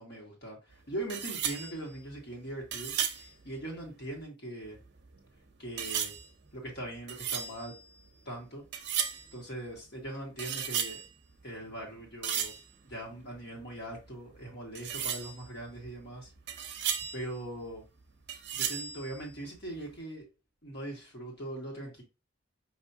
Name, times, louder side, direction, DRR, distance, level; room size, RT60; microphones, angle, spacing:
voice 1, 0.0-4.8 5.6-6.1 6.5-7.7 8.2-8.7 9.3-11.0 11.4-12.5 12.8-16.3 17.1-17.8 18.5-20.3 20.6-22.0, right 1 dB, 55° left, -1 dB, 1.7 m, -41 dB
sound 1, 0.7-0.8 1.1-4.2 4.6-5.3 5.8-8.4 8.7-9.4 9.8-11.4 11.7-13.7 14.0-14.1 14.3-14.5 14.8-18.0 18.3-19.8, right 8 dB, 55° right, 0.7 m, -36 dB
5.7 x 2.9 x 2.7 m, 0.28 s
head